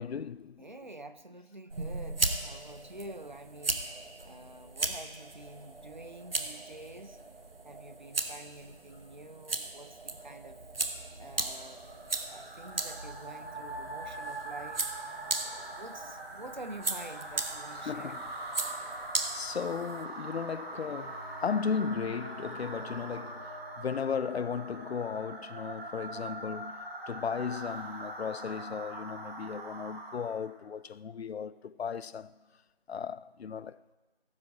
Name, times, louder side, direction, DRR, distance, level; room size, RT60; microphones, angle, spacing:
voice 1, 0.0-0.6 17.9-18.2 19.3-23.5 23.8-32.3 32.9-33.8, left 6 dB, 90° left, 0.5 m, -35 dB
voice 2, 0.6-3.9 4.2-7.2 7.6-10.6 11.2-11.8 12.3-15.1 15.4-18.2, right 2 dB, 50° right, 0.6 m, -47 dB
sound 1, 1.7-20.0, right 3 dB, 65° right, 1.0 m, -37 dB
sound 2, 11.6-30.5, right 2 dB, 85° right, 2.4 m, -43 dB
Bowed string instrument, 20.7-24.9, right 2 dB, 40° left, 0.5 m, -53 dB
18.0 x 8.2 x 2.6 m
figure-of-eight pair, 180°, 30 cm